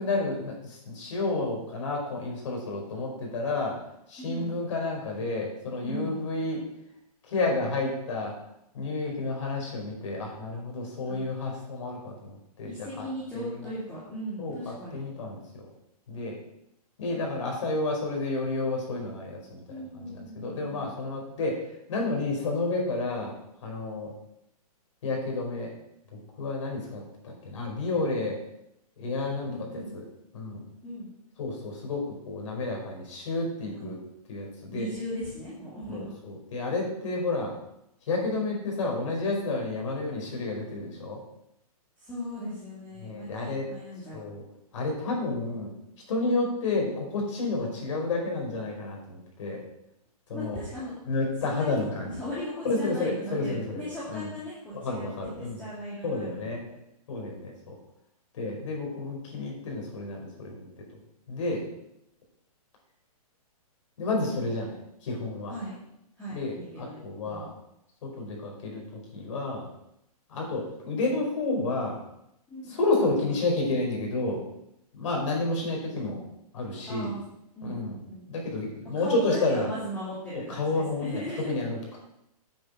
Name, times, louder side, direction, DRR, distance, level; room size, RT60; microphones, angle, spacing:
voice 1, 0.0-3.7 4.1-6.6 7.3-8.3 8.7-13.1 13.3-13.5 14.4-15.6 16.1-16.3 17.0-19.6 19.9-21.6 21.9-23.3 23.6-24.1 25.0-25.7 26.4-28.4 29.0-30.0 30.3-30.7 31.4-34.0 34.3-34.9 35.9-37.5 38.1-41.2 43.0-43.7 44.1-44.4 44.7-45.7 46.1-49.6 50.3-50.6 51.1-52.2 52.6-53.8 54.1-54.3 54.7-55.6 56.0-56.6 57.1-57.7 58.3-60.6 60.9-61.0 61.3-61.6 64.0-65.6 66.3-67.5 68.0-68.8 69.1-69.7 70.3-72.0 72.7-74.4 74.9-76.2 76.5-77.1 77.6-78.0 78.3-79.7 80.5-82.0, left 2 dB, 50° left, 0 dB, 4.9 m, -30 dB
voice 2, 4.2-4.6 5.8-6.2 11.1-11.2 12.6-15.0 19.7-20.9 29.4-29.9 30.8-31.1 33.7-33.9 34.7-36.1 42.0-44.2 50.3-51.0 51.4-51.9 52.1-56.8 65.5-65.8 66.2-67.5 72.5-72.8 76.9-77.2 77.6-78.3 78.9-81.5, equal, 10° left, -9 dB, 2.6 m, -38 dB
10.0 x 8.6 x 5.7 m, 0.81 s
hypercardioid pair, 165°, 20 cm